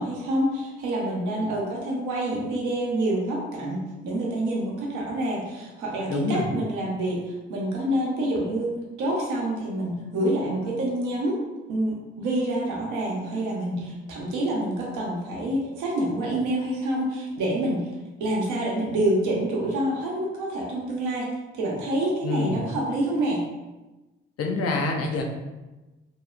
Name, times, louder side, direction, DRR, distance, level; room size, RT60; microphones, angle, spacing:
voice 1, 0.0-11.4 11.7-17.9 18.2-21.3 21.5-23.5, right 1 dB, 85° right, -3 dB, 0.7 m, -27 dB
voice 2, 6.1-6.5 22.2-22.6 24.4-25.2, left 3 dB, 55° left, 2 dB, 0.5 m, -26 dB
2.9 x 2.0 x 2.4 m, 1.1 s
supercardioid pair, 50°, 29 cm